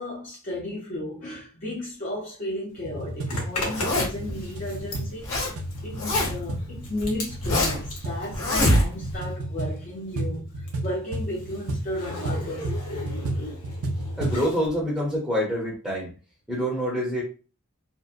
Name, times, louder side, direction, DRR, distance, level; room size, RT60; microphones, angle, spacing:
voice 1, 0.0-5.3 5.8-13.3, left 1 dB, 35° left, 0.5 m, -34 dB
sound 1, 2.8-14.5, right 1 dB, 75° right, 0.5 m, -32 dB
Zipper (clothing), 3.3-9.4 9.7-14.7, left 2 dB, 80° left, 0.9 m, -38 dB
Zipper (clothing) 2, 3.6-4.3 4.9-5.5 5.8-6.5 7.0-7.9 8.3-9.2, left 1 dB, 60° left, 1.3 m, -24 dB
voice 2, 14.2-16.1 16.5-17.2, equal, 5° right, 0.7 m, -26 dB
2.7 x 2.1 x 2.4 m
head